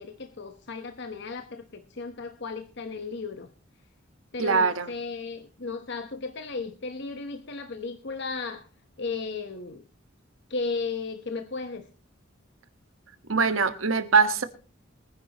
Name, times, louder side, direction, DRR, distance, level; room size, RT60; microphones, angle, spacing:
voice 1, 0.0-3.5 4.3-8.7 9.0-9.8 10.5-11.9, left 4 dB, 60° left, 1.0 m, -35 dB
voice 2, 4.4-4.9 13.3-14.4, right 5 dB, 90° right, 1.5 m, -22 dB
23.0 x 10.0 x 2.9 m
head